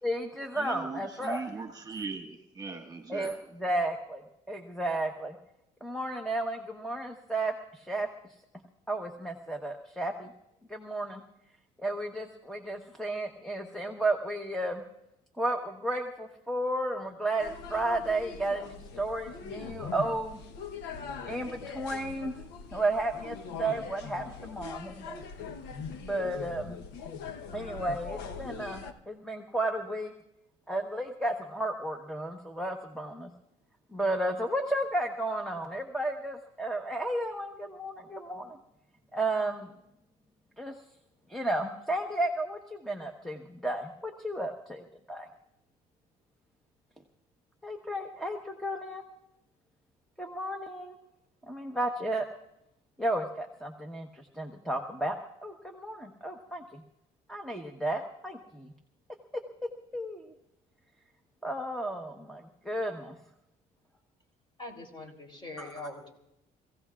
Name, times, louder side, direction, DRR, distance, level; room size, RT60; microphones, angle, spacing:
voice 1, 0.0-1.4 3.1-5.4 5.8-8.1 8.9-10.3 10.7-11.2 11.8-14.8 15.4-20.4 21.3-22.3 22.7-25.3 26.0-26.8 27.5-30.1 30.7-33.3 33.9-38.6 39.1-39.7 40.6-40.7 41.3-45.3 47.6-49.0 50.2-51.0 51.5-52.3 53.0-55.2 55.4-56.8 57.3-58.7 59.9-60.2 61.4-63.2 65.6-65.7, right 1 dB, ahead, 1.2 m, -33 dB
voice 2, 0.5-3.4, right 4 dB, 20° right, 1.7 m, -39 dB
sound 1, 17.4-28.9, left 5 dB, 90° left, 1.1 m, -42 dB
voice 3, 64.6-66.1, left 2 dB, 30° left, 3.7 m, -42 dB
28.5 x 16.0 x 2.5 m
cardioid pair, 110°, 17 cm